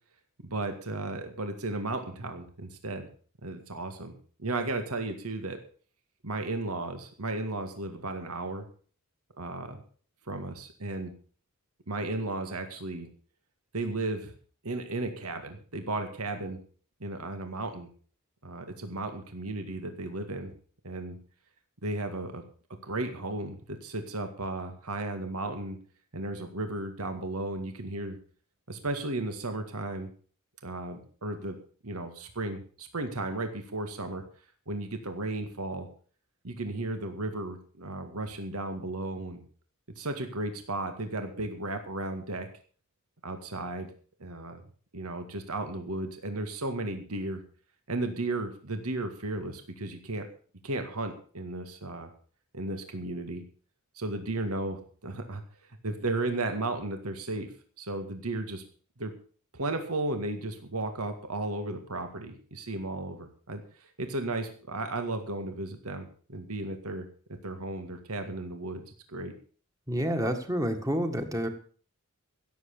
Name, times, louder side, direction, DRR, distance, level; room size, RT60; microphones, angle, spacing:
voice 1, 0.4-3.1 3.4-5.6 6.2-8.6 9.4-9.8 10.3-11.1 11.9-13.1 13.7-14.3 14.6-16.6 17.0-17.9 18.4-20.5 20.8-21.2 21.8-22.4 22.8-25.8 26.1-28.2 28.7-30.1 30.6-31.6 31.8-34.2 34.7-35.9 36.4-39.4 40.0-42.5 43.2-43.9 44.2-44.6 44.9-47.4 47.9-50.3 50.6-52.1 52.5-53.4 54.0-55.4 55.8-57.5 57.8-58.6 59.0-59.1 59.5-67.1 67.4-68.8 69.1-69.3, right 2 dB, 80° right, 7 dB, 2.1 m, -34 dB
voice 2, 69.9-71.5, equal, 15° right, 6 dB, 1.8 m, -29 dB
16.5 x 7.8 x 6.7 m, 0.44 s
head